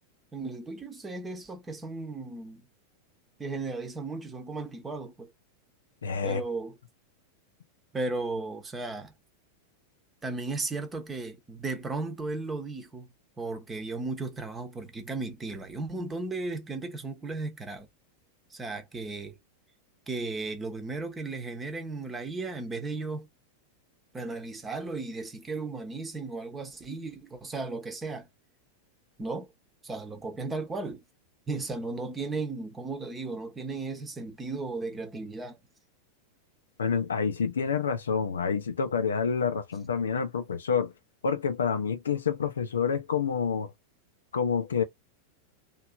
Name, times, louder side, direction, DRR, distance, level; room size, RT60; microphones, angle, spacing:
voice 1, 0.3-2.6 3.4-5.3 6.2-6.8 7.9-9.1 10.2-13.1 13.4-17.9 18.5-19.4 20.1-23.3 24.1-28.3 29.2-29.5 29.8-31.0 31.5-35.6, right 3 dB, 15° right, 1.0 m, -35 dB
voice 2, 6.0-6.4 36.8-40.9 41.2-43.7 44.3-44.8, left 6 dB, 70° left, 0.6 m, -28 dB
3.1 x 2.8 x 2.4 m
figure-of-eight pair, 90°, 0 cm